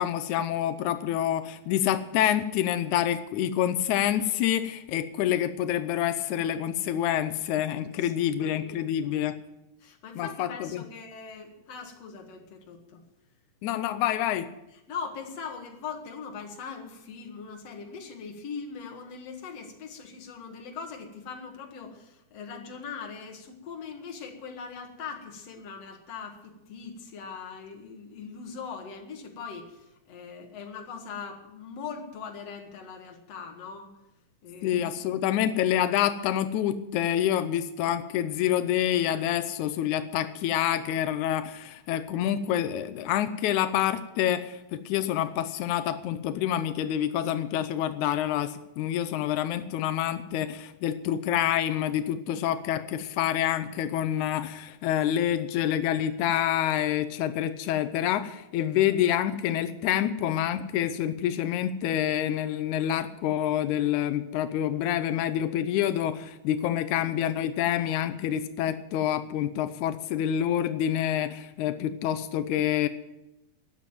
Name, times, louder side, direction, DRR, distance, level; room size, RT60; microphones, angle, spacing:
voice 1, 0.0-9.4 10.1-10.8 13.6-14.5 34.6-72.9, left 11 dB, 85° left, 11 dB, 1.7 m, -27 dB
voice 2, 8.0-9.1 9.8-13.0 14.9-33.9 34.4-34.8, left 5 dB, 50° left, 3 dB, 2.5 m, -41 dB
13.5 x 9.3 x 9.1 m, 0.91 s
omnidirectional pair, 4.2 m